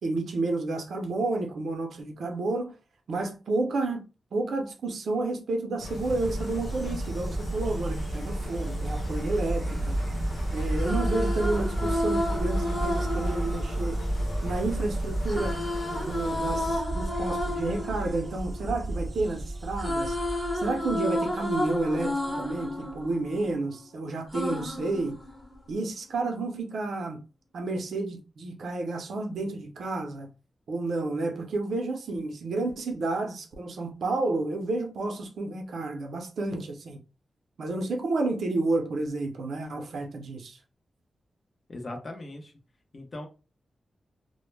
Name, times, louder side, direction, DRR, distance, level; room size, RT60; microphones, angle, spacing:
voice 1, 0.0-2.7 3.1-4.1 4.3-10.0 10.5-14.0 14.4-15.6 16.0-20.2 20.5-25.2 25.7-27.2 27.5-30.3 30.7-37.0 37.6-40.6, right 2 dB, 80° right, 0.5 m, -30 dB
sound 1, 5.8-16.8, left 2 dB, 85° left, 0.4 m, -40 dB
Insect, 5.8-20.9, right 1 dB, 25° right, 0.5 m, -32 dB
sound 2, 10.6-14.7 15.3-19.3 19.6-23.8 24.3-25.8, left 1 dB, 15° left, 0.9 m, -32 dB
voice 2, 41.7-42.5 42.9-43.3, left 2 dB, 40° left, 0.6 m, -39 dB
2.1 x 2.0 x 3.2 m
wide cardioid pair, 120°, 0 cm